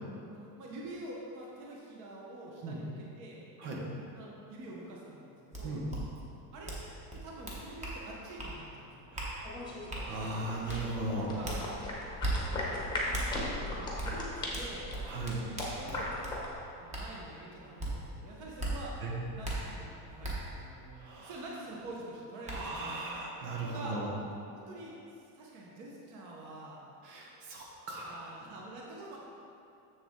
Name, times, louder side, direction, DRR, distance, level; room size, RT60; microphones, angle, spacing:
voice 1, 0.3-3.4 4.1-5.7 6.5-6.7 7.1-9.2 11.2-11.6 12.2-14.8 15.4-16.1 16.8-18.9 19.3-23.0 23.6-24.0 24.5-26.8 28.0-29.2, right 2 dB, 40° right, -3 dB, 1.0 m, -46 dB
sound 1, 5.5-5.6 5.9-6.0 6.6-6.8 7.1-8.0 8.4-8.5 9.1-9.3 9.9-10.0 10.7-10.8 11.4-11.6 12.2-12.3 13.1-13.3 14.0-14.1 14.5-16.4 16.9-17.0 17.8-17.9 18.6-18.7 19.4-19.5 20.2-20.3 21.8-21.9 22.4-22.6, right 2 dB, 15° right, 0.9 m, -36 dB
voice 2, 9.1-9.6 10.0-11.3 15.1-15.4 19.0-19.1 21.0-21.3 22.5-24.1 27.0-28.3, right 2 dB, 85° right, -2 dB, 1.7 m, -38 dB
sound 2, 9.4-16.5, left 1 dB, 10° left, 0.9 m, -38 dB
7.2 x 6.9 x 3.6 m, 2.7 s
cardioid pair, 175°, 45 cm